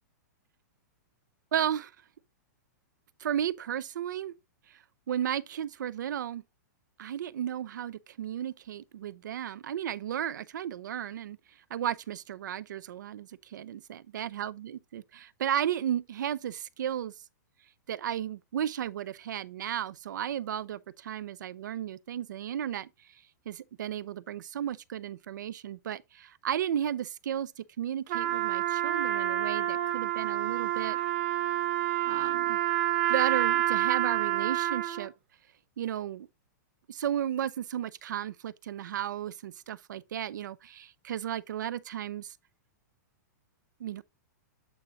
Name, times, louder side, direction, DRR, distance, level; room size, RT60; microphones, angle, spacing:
voice 1, 1.5-1.9 3.2-4.3 4.7-4.8 5.1-6.4 7.0-11.4 11.7-17.1 17.9-22.9 23.5-31.0 32.1-32.6 33.1-35.1 35.8-36.3 36.9-42.3 43.8-44.0, right 10 dB, 90° right, 0.5 m, -34 dB
Trumpet, 28.1-35.1, right 13 dB, 40° right, 1.0 m, -28 dB
8.4 x 2.9 x 5.0 m
supercardioid pair, 175°, 10 cm